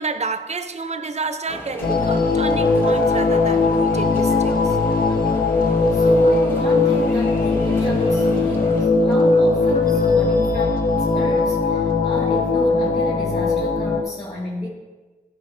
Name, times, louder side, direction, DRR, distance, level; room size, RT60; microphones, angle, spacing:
voice 1, 0.0-4.8, right 4 dB, 40° right, 0.6 m, -29 dB
sound 1, 1.5-8.9, left 1 dB, 15° left, 1.2 m, -36 dB
sound 2, 1.8-14.0, left 3 dB, 60° left, 0.9 m, -19 dB
voice 2, 5.9-14.7, equal, 40° left, 1.9 m, -32 dB
14.0 x 4.6 x 3.3 m
wide cardioid pair, 100°, 17 cm